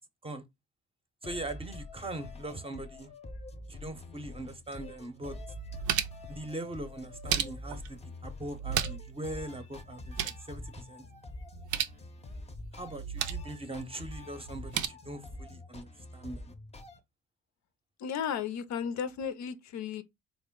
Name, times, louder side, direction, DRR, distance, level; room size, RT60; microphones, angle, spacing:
sound 1, 1.2-17.0, left 2 dB, 20° left, 0.6 m, -46 dB
voice 1, 1.2-3.1 3.7-5.4 6.3-11.0 12.7-16.5, right 2 dB, 20° right, 0.6 m, -41 dB
sound 2, 4.9-5.0 5.4-6.3 7.0-7.9 8.5-9.2 9.4-9.5 9.9-10.5 11.5-12.0 12.8-13.5 14.4-14.9, right 9 dB, 75° right, 0.5 m, -34 dB
voice 2, 18.0-20.0, left 7 dB, 70° left, 0.5 m, -34 dB
3.6 x 2.1 x 3.5 m
cardioid pair, 90°, 30 cm